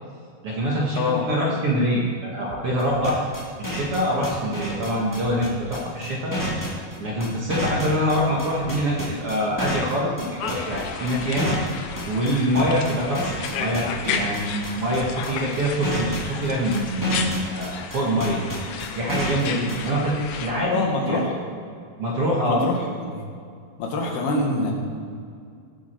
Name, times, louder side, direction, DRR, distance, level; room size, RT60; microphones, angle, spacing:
voice 1, 0.4-3.3 3.6-6.3 7.0-11.6 12.1-18.4 18.7-21.2 22.0-22.7, equal, 55° right, -3 dB, 1.7 m, -25 dB
voice 2, 0.9-1.3 20.7-21.3 22.5-23.2 23.8-24.7, left 2 dB, 85° left, 1 dB, 3.7 m, -25 dB
sound 1, 2.5-2.8 5.2-5.6 8.1-8.5 10.7-11.1, right 2 dB, 90° right, 5.6 m, -43 dB
sound 2, 2.8-19.7, equal, 10° left, 1.0 m, -30 dB
sound 3, 10.4-20.5, left 6 dB, 70° left, 2.2 m, -33 dB
19.0 x 8.4 x 4.4 m, 2.3 s
omnidirectional pair, 4.4 m